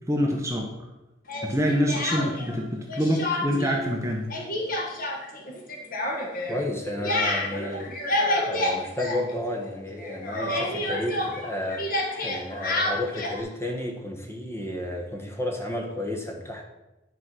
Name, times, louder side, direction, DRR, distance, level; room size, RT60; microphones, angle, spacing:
voice 1, 0.1-0.7 1.4-4.3, equal, 15° right, 0 dB, 1.0 m, -25 dB
Speech, 1.3-2.6 2.9-3.8 4.0-9.7 10.0-13.4, left 1 dB, 50° left, 1.6 m, -29 dB
voice 2, 6.5-7.9 8.4-16.6, left 1 dB, 15° left, 2 dB, 1.3 m, -32 dB
10.5 x 4.7 x 6.2 m, 1.0 s
head